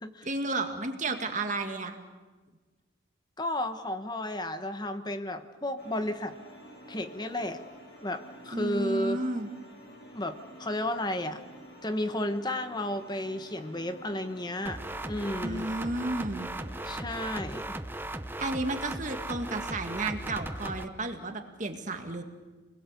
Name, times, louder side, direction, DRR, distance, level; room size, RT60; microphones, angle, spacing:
voice 1, 0.2-2.0 8.5-9.5 15.4-16.5 18.4-22.2, right 2 dB, 40° right, 5 dB, 2.0 m, -32 dB
voice 2, 3.4-6.3 6.9-7.6 8.0-9.2 10.1-11.4 11.8-15.7 16.8-17.8, left 1 dB, 20° left, 9 dB, 1.1 m, -33 dB
sound 1, 5.8-17.0, equal, 55° left, 7.7 m, -50 dB
sound 2, 14.7-20.8, right 1 dB, 10° right, 0.8 m, -37 dB
28.5 x 20.5 x 8.3 m, 1.3 s
head